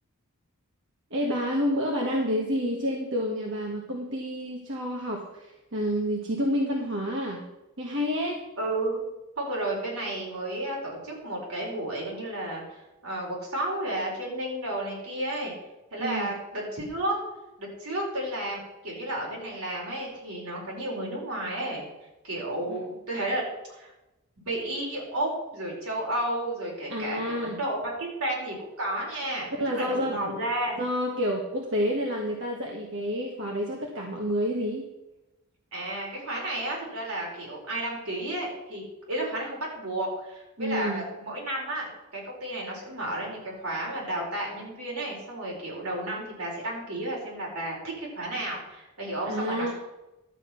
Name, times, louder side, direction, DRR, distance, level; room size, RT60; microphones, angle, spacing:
voice 1, 1.1-7.4 7.8-8.4 16.0-16.3 22.7-22.8 26.9-27.6 29.6-30.3 30.8-34.9 40.6-41.0 49.2-49.7, equal, 55° right, 0 dB, 1.5 m, -29 dB
voice 2, 8.6-9.0 9.4-15.5 15.9-17.2 17.6-21.9 22.2-23.4 23.7-23.9 24.5-30.8 35.7-49.7, right 1 dB, 80° right, -3 dB, 4.7 m, -32 dB
12.0 x 8.1 x 5.8 m, 0.98 s
head